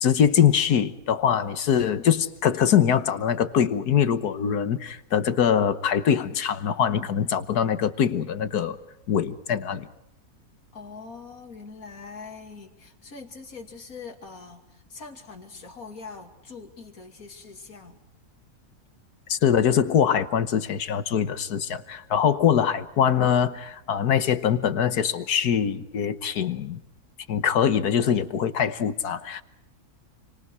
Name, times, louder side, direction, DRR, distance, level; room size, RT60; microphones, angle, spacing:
voice 1, 0.0-8.8 9.1-9.9 19.3-26.8 27.3-29.4, left 8 dB, 80° left, 12 dB, 1.7 m, -23 dB
voice 2, 10.7-18.0, left 4 dB, 65° left, 4 dB, 3.1 m, -43 dB
29.5 x 24.5 x 4.7 m, 0.85 s
omnidirectional pair, 1.6 m